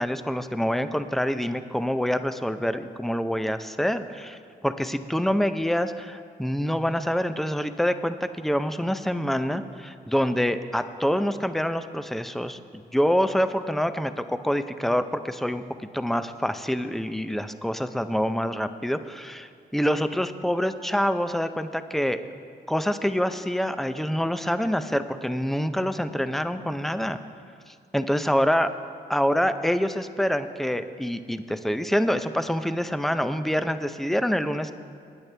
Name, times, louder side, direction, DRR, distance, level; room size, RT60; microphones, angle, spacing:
voice 1, 0.0-4.4 4.6-12.6 12.9-15.6 15.9-22.2 22.7-27.2 27.7-28.7 29.1-34.7, equal, ahead, 10 dB, 0.6 m, -26 dB
20.0 x 9.0 x 3.4 m, 2.3 s
cardioid pair, 85°, 17 cm